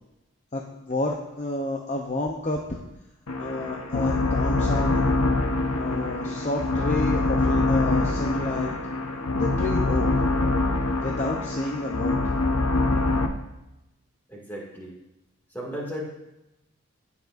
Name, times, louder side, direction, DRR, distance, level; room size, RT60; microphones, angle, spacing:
voice 1, 0.5-2.8 3.4-5.1 5.7-8.7 9.3-10.1 11.0-12.2, left 2 dB, 35° left, 0 dB, 0.7 m, -30 dB
sound 1, 3.3-13.3, left 2 dB, 85° left, 0.8 m, -24 dB
voice 2, 14.3-14.9 15.5-16.0, equal, 10° left, -3 dB, 2.1 m, -35 dB
17.5 x 7.0 x 2.6 m, 0.95 s
head